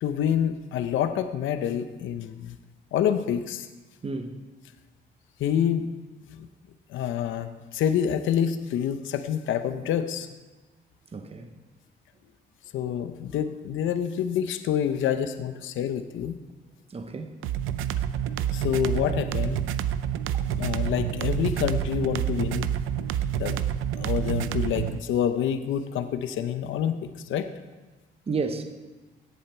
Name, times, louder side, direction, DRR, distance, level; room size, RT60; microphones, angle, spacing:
voice 1, 0.0-2.6 2.9-3.7 5.4-5.9 6.3-6.5 6.9-10.3 12.7-16.4 18.5-19.6 20.6-22.7 23.0-23.1 23.3-23.7 23.9-27.5, left 9 dB, 80° left, 0.8 m, -27 dB
voice 2, 4.0-4.4 11.1-11.5 16.9-17.4 28.3-28.6, right 4 dB, 30° right, 1.0 m, -31 dB
sound 1, 17.4-25.0, right 9 dB, 90° right, 0.5 m, -28 dB
17.0 x 7.3 x 4.4 m
cardioid pair, 90°, 20 cm